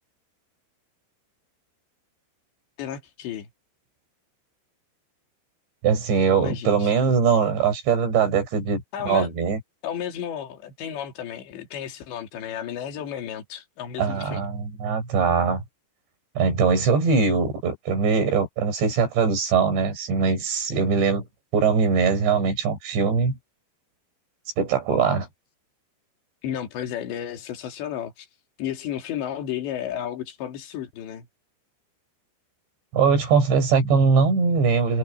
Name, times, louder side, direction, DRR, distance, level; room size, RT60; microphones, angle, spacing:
voice 1, 2.8-3.5 6.4-7.1 8.9-9.3 9.8-14.5 26.4-28.3 28.6-31.3, left 9 dB, 70° left, 5.0 m, -33 dB
voice 2, 5.8-9.6 14.0-15.6 16.4-21.2 21.5-23.4 24.6-25.3 32.9-35.0, right 5 dB, 70° right, 8.0 m, -21 dB
omnidirectional pair, 5.3 m